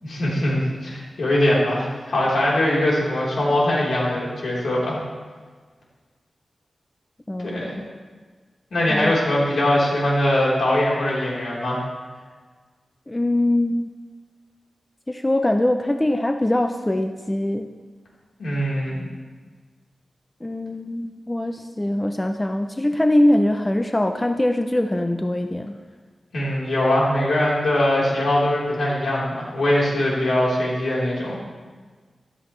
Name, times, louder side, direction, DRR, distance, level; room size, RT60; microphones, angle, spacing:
voice 1, 0.0-5.0 7.4-7.8 8.7-11.8 18.4-19.0 26.3-31.4, left 1 dB, 75° left, -6 dB, 3.9 m, -21 dB
voice 2, 7.3-7.9 8.9-9.1 13.1-13.9 15.1-17.7 20.4-25.8, left 1 dB, 15° left, 6 dB, 0.4 m, -22 dB
14.0 x 12.5 x 3.3 m, 1.5 s
wide cardioid pair, 160°, 0 cm